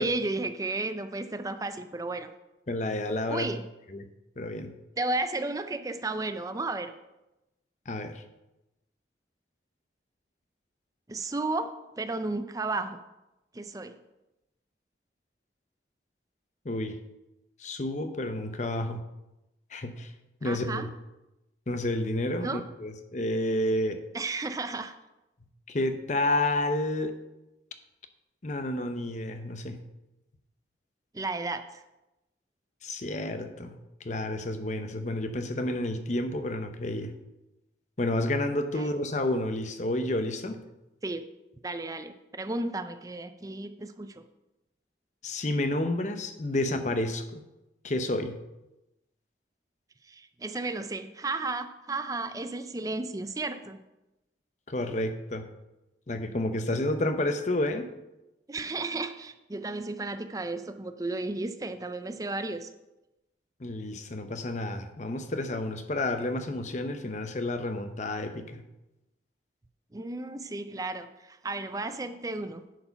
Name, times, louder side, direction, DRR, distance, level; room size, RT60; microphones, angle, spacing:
voice 1, 0.0-2.3 3.3-3.6 5.0-6.9 11.1-11.7 12.0-13.0 13.5-14.0 20.4-20.9 22.4-22.6 24.1-24.9 31.1-31.8 38.8-38.9 41.0-41.2 41.6-44.2 50.1-53.8 58.5-62.7 69.9-72.6, right 2 dB, 20° right, 9 dB, 0.4 m, -33 dB
voice 2, 2.7-3.5 3.9-4.1 4.4-4.7 7.9-8.2 16.6-16.9 17.6-19.0 19.7-20.1 20.4-20.9 21.7-24.0 25.7-27.1 28.4-29.8 32.8-33.8 34.0-37.1 38.0-40.6 45.2-47.4 47.8-48.4 54.7-55.5 56.1-57.9 63.6-68.6, left 1 dB, 40° left, 7 dB, 0.8 m, -30 dB
10.5 x 4.7 x 5.8 m, 0.96 s
head